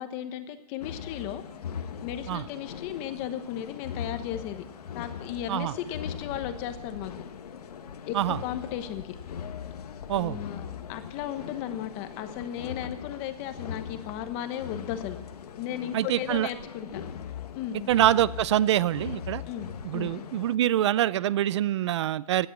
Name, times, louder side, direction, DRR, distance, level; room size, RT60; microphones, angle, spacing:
voice 1, 0.0-1.4 2.0-4.6 4.9-7.1 8.1-9.2 10.1-10.6 10.9-15.2 15.6-17.0 17.5-17.9 19.5-20.1, left 10 dB, 25° left, 1.1 m, -35 dB
sound 1, 0.8-20.6, left 7 dB, 75° left, 1.4 m, -40 dB
voice 2, 15.9-16.5 17.9-19.4 19.8-22.5, right 12 dB, 45° right, 0.5 m, -25 dB
17.0 x 10.5 x 7.3 m
hypercardioid pair, 160°, 20 cm